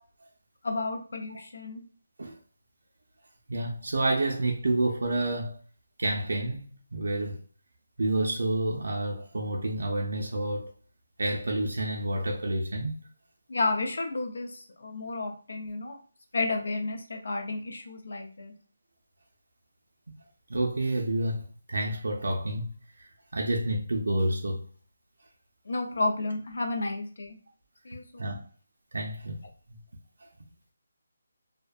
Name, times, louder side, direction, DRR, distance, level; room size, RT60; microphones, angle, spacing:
voice 1, 0.6-1.8 13.5-16.0 16.3-18.5 25.7-27.4 27.8-28.4, left 2 dB, 70° left, 0.6 m, -32 dB
voice 2, 3.5-5.6 6.0-6.7 6.9-7.4 8.0-10.7 11.2-12.9 20.5-24.6 28.2-28.5 28.9-29.4 29.7-29.8, right 1 dB, 75° right, 0.4 m, -29 dB
2.6 x 2.1 x 2.4 m
hypercardioid pair, 170°, 0 cm